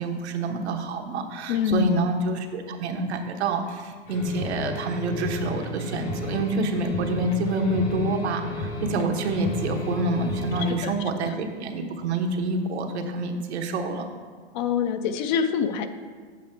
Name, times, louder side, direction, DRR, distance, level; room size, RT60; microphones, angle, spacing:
voice 1, 0.0-14.1, right 2 dB, 80° right, 4 dB, 1.0 m, -27 dB
voice 2, 1.5-2.0 10.7-10.9 14.5-15.9, left 7 dB, 45° left, 10 dB, 0.5 m, -25 dB
sound 1, 4.1-10.8, left 2 dB, 60° left, 1.8 m, -32 dB
7.4 x 5.6 x 4.4 m, 1.5 s
hypercardioid pair, 135°, 33 cm